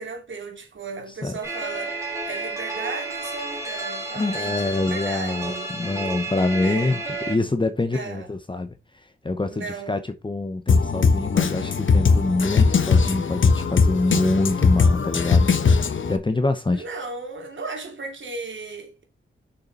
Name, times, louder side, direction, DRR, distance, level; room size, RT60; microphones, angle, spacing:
voice 1, 0.0-2.0 2.2-5.7 6.6-6.9 7.9-8.3 9.5-10.0 16.7-19.0, right 4 dB, 65° right, 2.7 m, -35 dB
sound 1, 1.4-7.4, right 2 dB, 15° right, 3.2 m, -31 dB
voice 2, 4.1-8.7 9.2-15.5 16.1-16.8, left 2 dB, 25° left, 0.9 m, -25 dB
Drum kit, 10.7-16.2, left 5 dB, 70° left, 1.0 m, -19 dB
6.7 x 5.7 x 4.1 m
wide cardioid pair, 95°, 21 cm